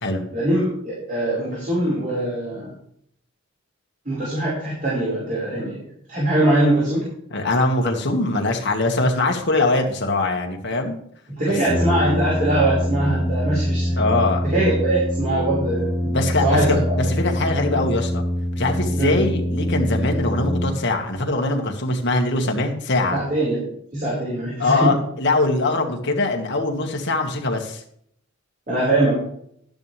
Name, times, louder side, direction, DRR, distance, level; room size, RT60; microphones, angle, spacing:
voice 1, 0.3-2.7 4.1-5.8 6.1-7.0 11.4-14.0 14.4-17.0 18.9-19.2 23.1-25.0 28.7-29.2, right 1 dB, 40° right, -7 dB, 5.2 m, -22 dB
voice 2, 7.3-11.0 11.5-11.6 14.0-14.4 16.1-18.2 18.6-23.2 24.6-27.8, left 2 dB, 55° left, 2 dB, 1.9 m, -22 dB
Brass instrument, 11.6-21.1, equal, ahead, 4.5 m, -24 dB
12.5 x 10.5 x 3.5 m, 0.67 s
head